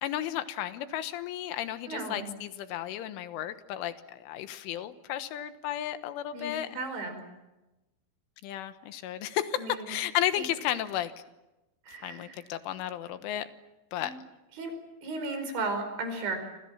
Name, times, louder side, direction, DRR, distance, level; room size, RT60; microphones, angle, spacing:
voice 1, 0.0-6.8 8.4-11.1 11.9-13.5 13.9-14.1, left 12 dB, 85° left, 10 dB, 3.7 m, -33 dB
voice 2, 1.9-2.3 6.3-7.2 9.6-9.9 10.4-10.5 11.9-12.4 14.0-14.2 14.6-14.7 15.0-16.4, right 3 dB, 70° right, 7 dB, 7.1 m, -35 dB
27.5 x 26.5 x 7.4 m, 1.0 s
omnidirectional pair, 5.5 m